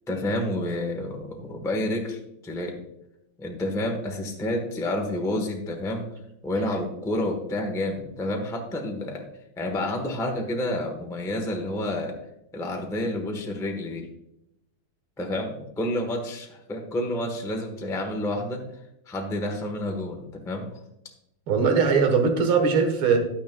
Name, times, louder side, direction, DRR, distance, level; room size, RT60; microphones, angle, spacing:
voice 1, 0.1-2.8 3.4-6.1 6.4-9.3 9.6-12.2 12.5-14.1 15.2-18.6 19.1-20.8, left 1 dB, 5° left, 2 dB, 0.5 m, -29 dB
voice 2, 21.5-23.2, right 5 dB, 80° right, 5 dB, 2.2 m, -20 dB
11.0 x 9.2 x 2.3 m, 0.85 s
omnidirectional pair, 2.3 m